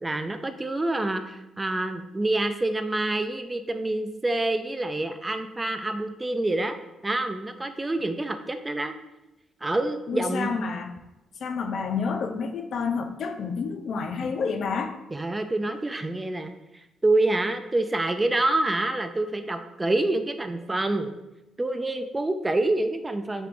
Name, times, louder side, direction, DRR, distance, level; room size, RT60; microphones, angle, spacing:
voice 1, 0.0-6.8 7.0-8.9 9.6-10.6 15.1-16.5 17.0-21.1 21.6-23.5, right 2 dB, 20° right, 8 dB, 0.3 m, -27 dB
voice 2, 10.1-11.0 11.4-15.0, left 5 dB, 60° left, 6 dB, 0.4 m, -29 dB
4.3 x 3.5 x 2.5 m, 0.97 s
cardioid pair, 90°, 0 cm